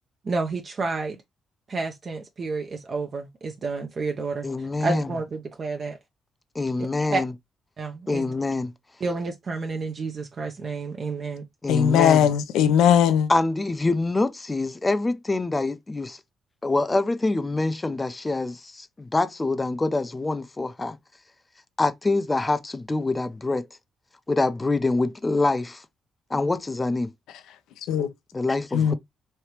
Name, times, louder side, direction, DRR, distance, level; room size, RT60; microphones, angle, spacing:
voice 1, 0.2-1.2 1.7-4.5 4.8-6.0 7.1-7.2 7.8-8.2 9.0-11.5, right 3 dB, 50° right, 0.6 m, -30 dB
voice 2, 4.4-5.1 6.5-7.3 8.1-8.7 11.6-12.3 13.3-16.2 16.6-21.0 21.8-23.7 24.3-25.8 26.3-27.1 28.3-28.9, left 2 dB, 25° left, 0.5 m, -25 dB
voice 3, 11.7-13.3 27.9-28.1 28.7-28.9, left 9 dB, 80° left, 0.4 m, -19 dB
3.3 x 2.7 x 2.9 m
supercardioid pair, 55°, 0 cm